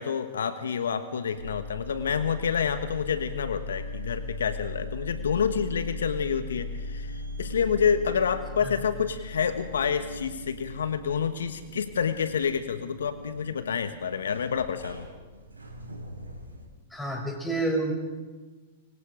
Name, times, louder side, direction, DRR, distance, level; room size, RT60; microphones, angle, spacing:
voice 1, 0.0-15.1, left 7 dB, 75° left, 10 dB, 1.4 m, -28 dB
sound 1, 1.3-16.7, left 1 dB, 90° right, 4.6 m, -39 dB
voice 2, 16.9-17.9, right 2 dB, 5° left, 1 dB, 7.0 m, -29 dB
25.5 x 24.5 x 5.1 m, 1.3 s
figure-of-eight pair, 100°, 0 cm